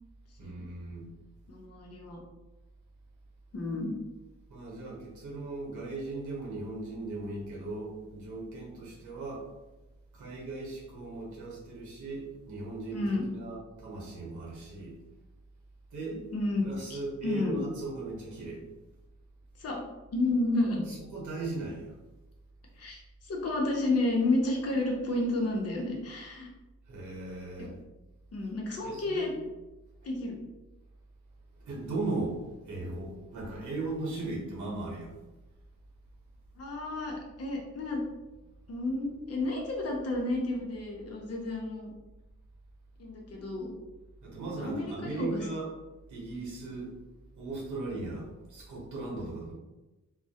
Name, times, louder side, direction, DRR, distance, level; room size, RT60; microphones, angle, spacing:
voice 1, 0.4-1.1 4.5-9.5 10.1-15.0 15.9-16.2 16.6-18.6 20.9-21.9 26.9-27.7 28.8-29.3 31.6-32.4 32.6-35.1 44.2-45.7 46.1-46.9 47.3-49.5, right 2 dB, 85° right, -4 dB, 0.9 m, -38 dB
voice 2, 1.5-2.2 3.5-3.9 12.9-13.2 16.1-16.6 16.9-17.6 19.6-19.8 20.1-20.8 22.8-26.5 27.6-27.7 28.3-29.3 30.0-30.4 36.6-38.0 38.7-41.9 43.0-43.7 44.6-45.5, left 2 dB, 55° left, -1 dB, 0.6 m, -31 dB
2.2 x 2.0 x 2.7 m, 1.1 s
wide cardioid pair, 110°, 29 cm